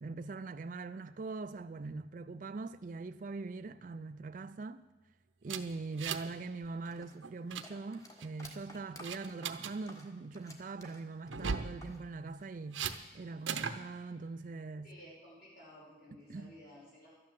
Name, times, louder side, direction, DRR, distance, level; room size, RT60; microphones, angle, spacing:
voice 1, 0.0-4.8 5.4-14.9 16.3-16.5, right 3 dB, 40° right, 0.4 m, -42 dB
sound 1, 5.5-6.4 6.6-6.9 7.2-7.7 8.2-8.6 9.0-9.7 11.3-11.7 12.7-13.0 13.5-13.8, right 6 dB, 80° right, 0.8 m, -37 dB
sound 2, 6.9-12.0 12.3-13.1, equal, 15° left, 1.4 m, -54 dB
voice 2, 14.8-17.1, equal, 50° left, 6.0 m, -55 dB
12.5 x 9.8 x 7.6 m
head